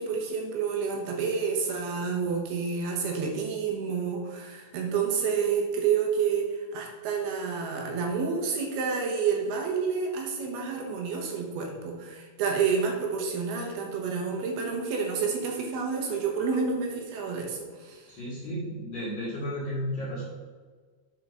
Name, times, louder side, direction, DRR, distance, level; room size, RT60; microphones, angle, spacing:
voice 1, 0.0-18.1, right 5 dB, 70° right, 1 dB, 2.6 m, -29 dB
voice 2, 18.1-20.3, equal, 45° left, -10 dB, 1.4 m, -33 dB
8.6 x 4.7 x 5.5 m, 1.5 s
omnidirectional pair, 5.4 m